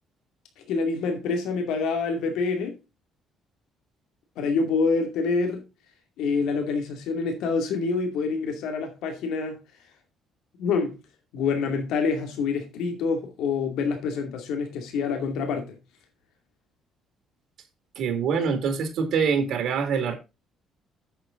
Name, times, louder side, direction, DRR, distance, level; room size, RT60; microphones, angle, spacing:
voice 1, 0.7-2.8 4.4-5.6 6.2-9.6 10.6-11.0 11.3-15.8, left 4 dB, 80° left, 2.3 m, -26 dB
voice 2, 18.0-20.1, right 6 dB, 65° right, 2.4 m, -25 dB
9.1 x 7.2 x 3.8 m
cardioid pair, 145°, 0 cm